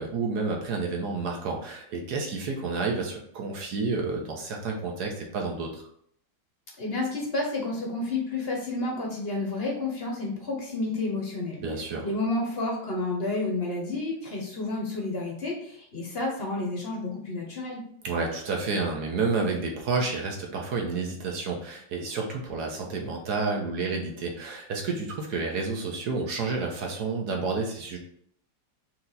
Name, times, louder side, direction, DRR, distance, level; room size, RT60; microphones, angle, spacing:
voice 1, 0.0-5.8 11.6-12.1 18.0-28.0, right 4 dB, 65° right, 0 dB, 1.3 m, -30 dB
voice 2, 6.8-11.6 12.0-17.8, left 2 dB, 45° left, -1 dB, 0.9 m, -30 dB
4.5 x 2.9 x 3.9 m, 0.66 s
omnidirectional pair, 2.0 m